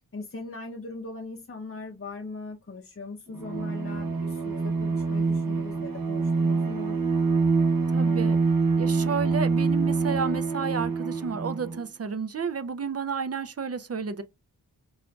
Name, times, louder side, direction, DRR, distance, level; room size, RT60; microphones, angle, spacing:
voice 1, 0.1-7.0, left 3 dB, 35° left, 0.6 m, -40 dB
Bowed string instrument, 3.3-11.8, right 4 dB, 55° right, 1.0 m, -25 dB
voice 2, 7.9-8.4 8.8-14.2, right 5 dB, 40° right, 0.4 m, -31 dB
4.9 x 2.4 x 2.2 m
wide cardioid pair, 50°, 39 cm